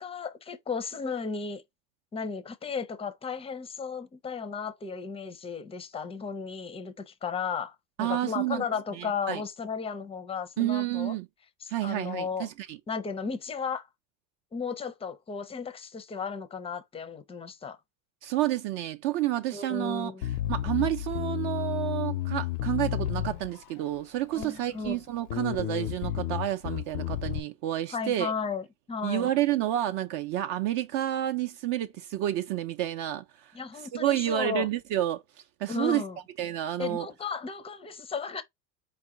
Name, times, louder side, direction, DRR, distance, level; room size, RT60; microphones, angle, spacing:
voice 1, 0.0-1.6 2.1-11.1 11.6-12.5 12.9-13.8 14.5-17.8 19.5-20.3 24.3-25.0 27.9-29.3 33.5-34.7 35.7-36.2 36.8-38.4, left 5 dB, 15° left, 0.4 m, -34 dB
voice 2, 8.0-8.6 8.9-9.4 10.6-11.3 11.7-12.8 18.2-20.1 20.5-28.3 29.0-33.5 33.9-35.2 35.6-36.0 36.4-37.1, right 13 dB, 60° right, 0.6 m, -29 dB
Bass guitar, 20.2-23.8 24.4-25.0 25.3-27.4, left 13 dB, 85° left, 0.6 m, -32 dB
4.8 x 2.2 x 3.7 m
supercardioid pair, 115°, 45 cm